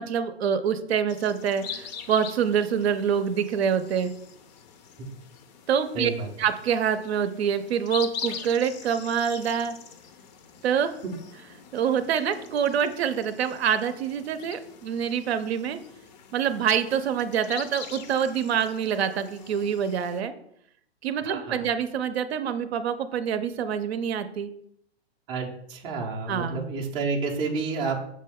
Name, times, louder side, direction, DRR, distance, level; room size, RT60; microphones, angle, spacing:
voice 1, 0.0-4.1 5.7-6.1 6.4-9.8 10.6-10.9 11.7-15.8 16.3-20.3 21.0-24.5 26.3-26.7, right 8 dB, 70° right, 10 dB, 0.6 m, -26 dB
sound 1, 1.1-20.2, left 6 dB, 40° left, 0.5 m, -43 dB
voice 2, 5.9-6.3 21.2-21.6 25.3-27.9, right 4 dB, 15° right, 0 dB, 0.4 m, -30 dB
6.3 x 2.2 x 3.5 m, 0.72 s
hypercardioid pair, 130°, 33 cm